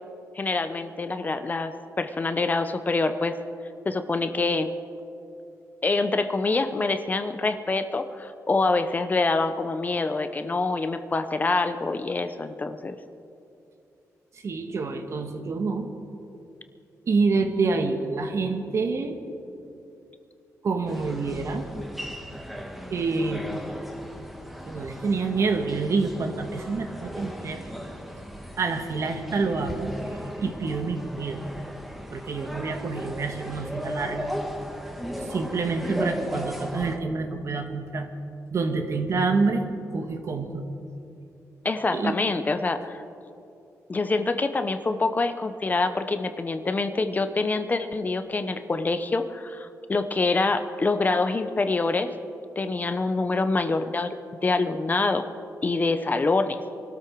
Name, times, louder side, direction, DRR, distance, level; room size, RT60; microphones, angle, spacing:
voice 1, 0.3-3.4 3.8-4.7 5.8-13.0 41.6-43.0 43.9-52.1 52.6-54.2 54.4-55.2 55.6-56.6, left 3 dB, 30° left, 9 dB, 0.8 m, -25 dB
voice 2, 14.3-15.9 17.1-19.2 20.6-21.6 22.9-23.4 24.7-27.6 28.6-29.9 30.4-31.4 32.1-34.3 35.2-38.1 38.5-39.6 39.9-40.6 41.9-42.2, right 4 dB, 55° right, 6 dB, 1.6 m, -27 dB
sound 1, 20.9-37.0, equal, ahead, 1.4 m, -36 dB
23.5 x 13.0 x 4.7 m, 2.6 s
cardioid pair, 105°, 6 cm